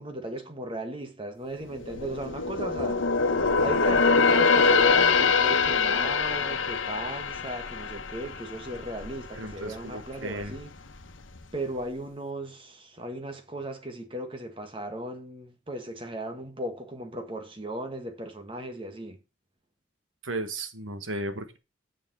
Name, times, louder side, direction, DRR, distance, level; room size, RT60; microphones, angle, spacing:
voice 1, 0.0-3.0 3.6-10.7 11.5-19.2, right 1 dB, 25° right, 1.6 m, -36 dB
sound 1, 1.6-9.2 9.5-9.8 10.3-11.0 11.4-11.5, left 4 dB, 85° left, 1.2 m, -24 dB
voice 2, 9.3-10.6 20.2-21.6, right 2 dB, 85° right, 1.5 m, -35 dB
7.0 x 6.9 x 6.8 m
head